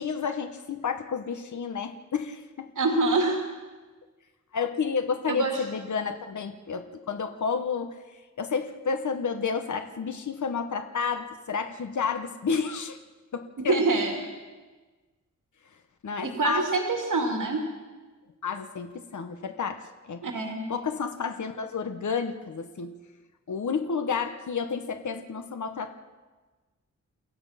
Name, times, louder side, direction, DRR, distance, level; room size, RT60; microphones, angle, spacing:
voice 1, 0.0-2.7 4.5-7.9 8.4-13.0 13.3-13.8 16.0-16.7 18.4-20.2 20.7-23.0 23.5-25.9, left 5 dB, 70° left, 7 dB, 1.3 m, -31 dB
voice 2, 2.8-3.4 5.3-5.6 13.6-14.2 16.2-17.6 20.2-20.7, right 3 dB, 90° right, 2 dB, 2.6 m, -25 dB
29.5 x 15.5 x 5.8 m, 1.3 s
wide cardioid pair, 150°, 30 cm